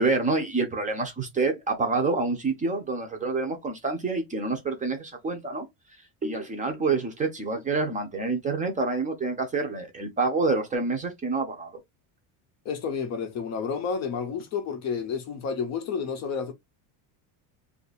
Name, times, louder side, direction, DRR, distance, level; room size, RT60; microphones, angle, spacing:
voice 1, 0.0-5.6 6.2-11.7, right 3 dB, 15° right, 0.6 m, -27 dB
voice 2, 12.7-16.5, left 6 dB, 35° left, 0.6 m, -30 dB
2.6 x 2.5 x 4.0 m
cardioid pair, 170°, 45 cm